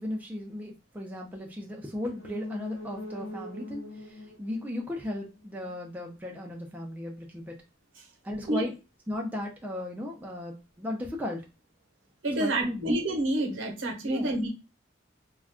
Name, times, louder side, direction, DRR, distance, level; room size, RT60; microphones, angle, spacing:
voice 1, 0.0-7.5 8.2-8.7 9.1-11.4 12.4-12.9 14.0-14.3, left 1 dB, 10° right, -1 dB, 0.4 m, -36 dB
sound 1, 2.1-5.8 6.1-6.2, left 1 dB, 65° left, 0.6 m, -42 dB
voice 2, 12.2-14.5, right 1 dB, 70° right, 1 dB, 0.9 m, -28 dB
2.4 x 2.2 x 3.4 m, 0.29 s
head